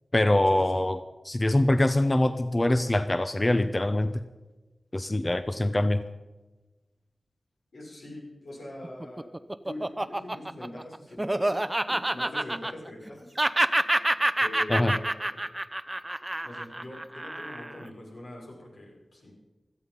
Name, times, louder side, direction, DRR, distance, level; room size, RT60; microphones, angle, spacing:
voice 1, 0.1-1.0 1.2-4.1 4.9-6.0 14.7-14.9, left 1 dB, 30° left, 10 dB, 0.8 m, -24 dB
voice 2, 7.7-11.6 11.9-13.4 14.4-15.5 16.4-19.3, left 1 dB, 75° left, -2 dB, 6.1 m, -43 dB
Laughter, 8.8-13.1 13.4-17.8, right 1 dB, 20° right, 0.7 m, -27 dB
16.5 x 13.5 x 5.5 m, 1.1 s
cardioid pair, 45°, 0 cm